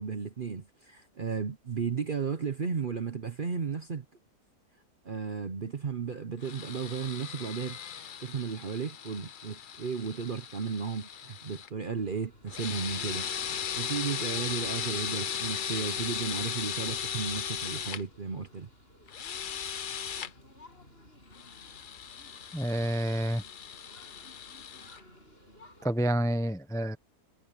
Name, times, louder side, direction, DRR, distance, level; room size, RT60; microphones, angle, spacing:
voice 1, 0.0-4.0 5.0-7.8 8.2-18.7, right 6 dB, 45° right, 0.8 m, -34 dB
sound 1, 6.4-11.7 12.5-18.0 19.1-20.3 21.3-25.0, left 8 dB, 60° left, 0.5 m, -37 dB
sound 2, 12.0-25.9, left 1 dB, 35° left, 7.3 m, -56 dB
voice 2, 22.5-23.4 25.8-27.0, equal, 5° left, 0.6 m, -28 dB
omnidirectional pair, 1.7 m